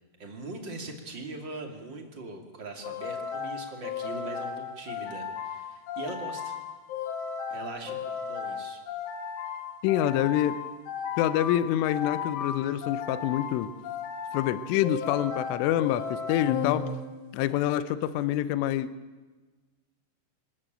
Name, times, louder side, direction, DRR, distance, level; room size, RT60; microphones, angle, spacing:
voice 1, 0.2-6.6 7.5-8.8, right 2 dB, 35° right, 2 dB, 2.0 m, -41 dB
sound 1, 2.8-17.4, left 7 dB, 65° left, 3.8 m, -35 dB
voice 2, 9.8-10.6 11.2-13.7 14.3-16.9 17.3-18.9, left 12 dB, 85° left, 14 dB, 3.3 m, -26 dB
25.5 x 13.5 x 9.0 m, 1.2 s
omnidirectional pair, 5.7 m